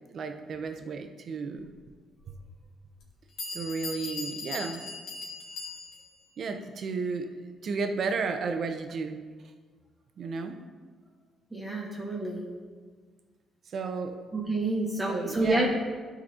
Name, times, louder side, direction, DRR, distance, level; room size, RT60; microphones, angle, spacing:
voice 1, 0.1-1.7 2.3-2.4 3.5-4.9 6.4-7.3 7.6-9.2 10.2-10.6 13.7-14.2 15.1-15.7, right 4 dB, 55° right, 7 dB, 0.8 m, -33 dB
Bell, 2.2-2.3 3.0-3.1 3.4-6.2, left 4 dB, 75° left, 1.7 m, -39 dB
voice 2, 11.5-12.4 14.3-15.7, right 2 dB, 15° right, -3 dB, 1.5 m, -28 dB
11.5 x 4.0 x 4.3 m, 1.5 s
cardioid pair, 90°, 0 cm